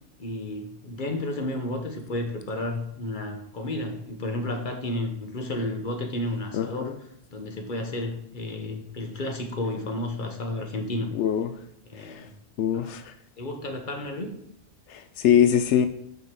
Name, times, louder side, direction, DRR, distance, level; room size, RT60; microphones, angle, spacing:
voice 1, 0.2-6.9 7.3-11.1 11.9-12.3 12.7-12.9 13.4-14.4, left 1 dB, 45° left, 4 dB, 1.3 m, -32 dB
voice 2, 6.5-7.0 11.1-11.5 11.9-12.3 12.6-13.1 14.9-15.9, left 9 dB, 90° left, 10 dB, 0.9 m, -23 dB
6.2 x 5.1 x 6.8 m, 0.69 s
omnidirectional pair, 1.1 m